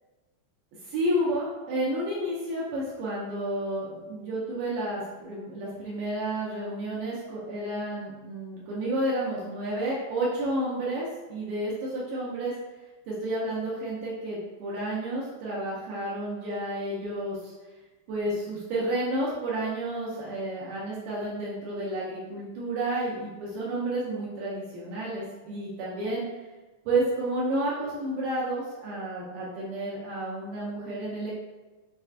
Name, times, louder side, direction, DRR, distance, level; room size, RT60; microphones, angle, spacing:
voice 1, 0.8-12.5 13.1-17.5 18.1-26.3 26.9-31.3, right 1 dB, 75° right, -6 dB, 2.1 m, -31 dB
6.4 x 2.3 x 2.4 m, 1.2 s
omnidirectional pair, 4.1 m